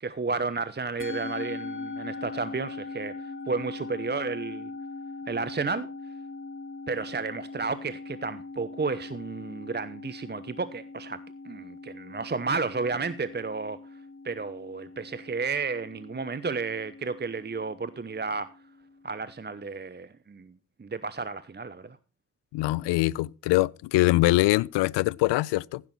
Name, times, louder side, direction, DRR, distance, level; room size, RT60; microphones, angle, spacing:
voice 1, 0.0-4.7 5.3-5.9 6.9-13.8 14.2-18.5 19.0-20.5 20.8-22.0, right 4 dB, 25° right, 0.9 m, -32 dB
Musical instrument, 1.0-19.5, left 3 dB, 30° left, 2.3 m, -41 dB
voice 2, 22.5-25.8, left 19 dB, 70° left, 0.6 m, -23 dB
15.5 x 8.4 x 4.3 m
hypercardioid pair, 40°, 44 cm